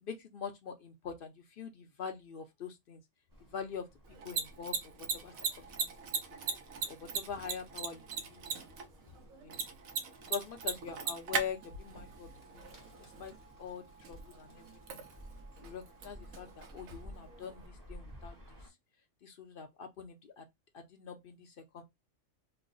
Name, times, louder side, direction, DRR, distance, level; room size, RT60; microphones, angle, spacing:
voice 1, 0.0-3.0 3.5-3.9 4.2-5.9 6.9-8.6 9.4-9.6 10.3-12.3 12.5-12.7 13.0-13.3 13.6-14.7 14.9-15.0 15.6-18.7 19.2-20.5 20.7-21.8, left 7 dB, 60° left, 0.6 m, -44 dB
Bird, 3.3-18.7, equal, 20° right, 0.7 m, -56 dB
Mechanisms, 4.0-17.7, right 5 dB, 85° right, 1.1 m, -41 dB
3.1 x 2.0 x 3.8 m
omnidirectional pair, 1.4 m